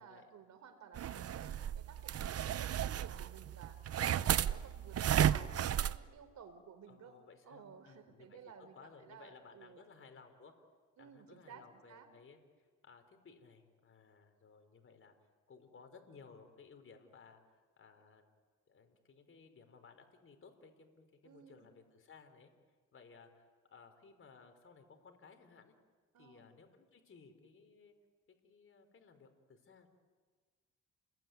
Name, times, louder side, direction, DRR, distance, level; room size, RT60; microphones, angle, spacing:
voice 1, 0.0-3.8 4.1-7.2 7.5-9.8 11.0-12.1 21.2-21.7 26.1-26.4, right 7 dB, 65° right, 8 dB, 4.4 m, -55 dB
sound 1, 1.0-6.0, right 10 dB, 50° right, 0.8 m, -34 dB
voice 2, 6.9-10.5 11.0-15.1 15.5-18.3 18.7-22.5 22.9-25.7 26.2-27.9 28.4-29.9, left 5 dB, 45° left, 6 dB, 4.3 m, -59 dB
30.0 x 21.5 x 9.4 m, 1.5 s
cardioid pair, 90°, 30 cm